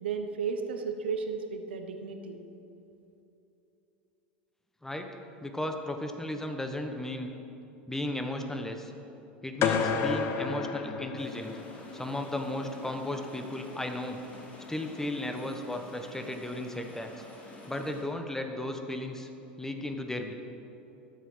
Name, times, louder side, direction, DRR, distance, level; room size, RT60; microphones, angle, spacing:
voice 1, 0.0-2.4, right 5 dB, 80° right, 6 dB, 0.9 m, -34 dB
voice 2, 5.4-7.3 7.9-8.9 9.4-11.5 11.9-14.2 14.7-17.2 17.7-19.3 19.6-20.3, left 1 dB, 10° left, 5 dB, 1.2 m, -35 dB
sound 1, 9.6-11.7, left 6 dB, 45° left, 0.9 m, -30 dB
sound 2, 11.1-18.0, left 2 dB, 25° left, 2.8 m, -48 dB
12.0 x 7.6 x 6.2 m, 2.9 s
hypercardioid pair, 85°, 6 cm